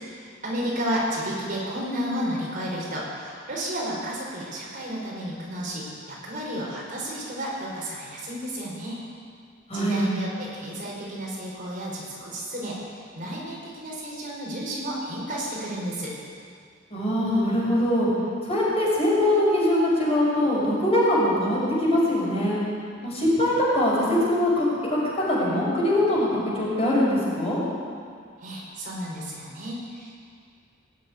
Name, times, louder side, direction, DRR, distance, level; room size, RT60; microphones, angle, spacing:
voice 1, 0.0-9.0 9.7-12.8 13.2-16.1 28.4-30.1, equal, 45° right, -4 dB, 4.6 m, -32 dB
voice 2, 9.7-10.1 16.9-18.1 18.4-22.6 23.0-25.0 25.3-27.6, left 1 dB, 35° left, -6 dB, 5.5 m, -22 dB
20.0 x 7.7 x 9.4 m, 2.2 s
head